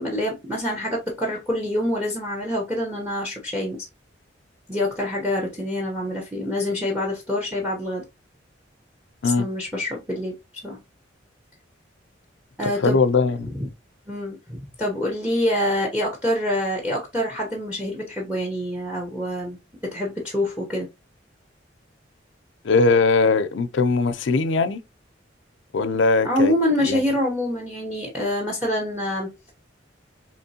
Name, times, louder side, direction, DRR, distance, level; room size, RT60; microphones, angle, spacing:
voice 1, 0.0-3.9 4.7-8.0 9.2-10.3 10.6-10.8 12.6-13.0 13.5-13.7 14.1-19.6 19.8-20.9 26.2-29.5, left 1 dB, 5° right, 0.9 m, -26 dB
voice 2, 12.8-13.5 22.6-24.8 25.7-26.5 26.8-27.0, left 4 dB, 75° left, 0.5 m, -20 dB
4.3 x 3.0 x 2.8 m
head